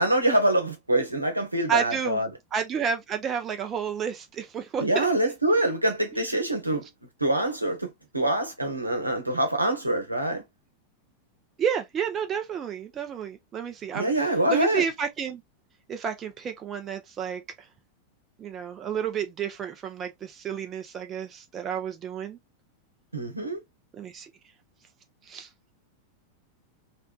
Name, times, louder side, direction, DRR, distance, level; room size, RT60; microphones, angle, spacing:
voice 1, 0.0-2.3 4.8-6.9 7.2-10.4 13.9-14.8 23.1-23.6, right 1 dB, 85° right, 1.0 m, -25 dB
voice 2, 1.7-2.2 2.5-5.1 11.6-14.1 14.5-15.4 15.9-17.4 18.4-22.4 24.0-24.3 25.3-25.5, right 7 dB, 25° right, 0.7 m, -30 dB
3.4 x 2.5 x 2.4 m
figure-of-eight pair, 90°, 0 cm